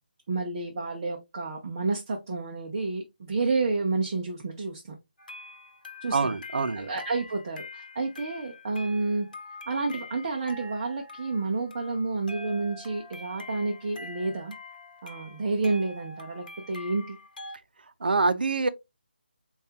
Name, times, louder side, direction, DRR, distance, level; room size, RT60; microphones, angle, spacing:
voice 1, 0.3-5.0 6.0-6.3 6.7-9.3 9.7-14.5 15.0-17.2, right 3 dB, 25° right, 0.6 m, -30 dB
sound 1, 5.2-17.6, left 2 dB, 55° left, 1.0 m, -45 dB
voice 2, 6.1-6.9 18.0-18.7, right 4 dB, 65° right, 0.6 m, -25 dB
7.0 x 2.4 x 2.8 m
hypercardioid pair, 175°, 5 cm